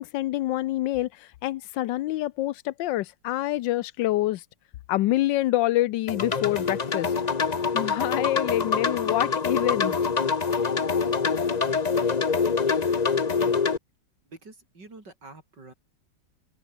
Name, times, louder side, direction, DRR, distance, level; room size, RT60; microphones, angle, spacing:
voice 1, 0.0-4.4 4.9-7.1 7.7-9.9, left 16 dB, 85° left, 1.3 m, -26 dB
sound 1, 6.1-13.8, left 5 dB, 30° left, 0.8 m, -25 dB
voice 2, 14.3-15.7, right 3 dB, 75° right, 5.7 m, -46 dB
omnidirectional pair, 1.9 m